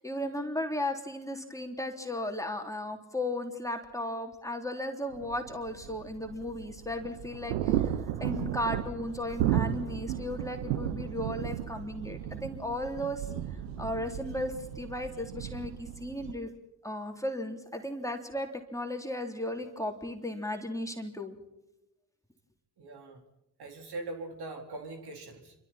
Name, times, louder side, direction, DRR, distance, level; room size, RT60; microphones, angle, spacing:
voice 1, 0.0-7.8 8.2-13.3 13.8-16.5 16.8-21.3, left 1 dB, 5° left, 3 dB, 3.3 m, -35 dB
sound 1, 5.1-16.3, right 11 dB, 70° right, 1.4 m, -34 dB
voice 2, 22.8-23.2 23.6-25.5, right 2 dB, 50° right, 3 dB, 4.3 m, -41 dB
29.0 x 25.5 x 4.3 m, 0.89 s
figure-of-eight pair, 45°, 49 cm